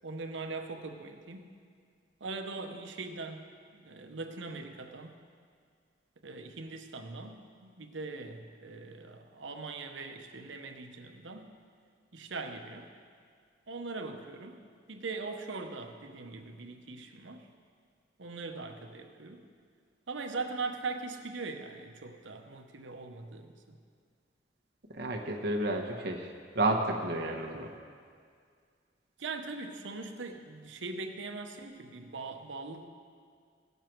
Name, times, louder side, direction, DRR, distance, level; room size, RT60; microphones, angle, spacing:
voice 1, 0.0-1.6 2.2-3.5 3.7-5.2 6.2-11.5 12.1-12.9 13.7-14.6 14.9-17.5 18.2-19.4 20.1-23.8 29.2-32.9, right 3 dB, 90° right, 5 dB, 0.9 m, -41 dB
voice 2, 24.9-27.7, right 2 dB, 60° right, 1 dB, 1.2 m, -31 dB
17.5 x 6.8 x 4.6 m, 2.1 s
head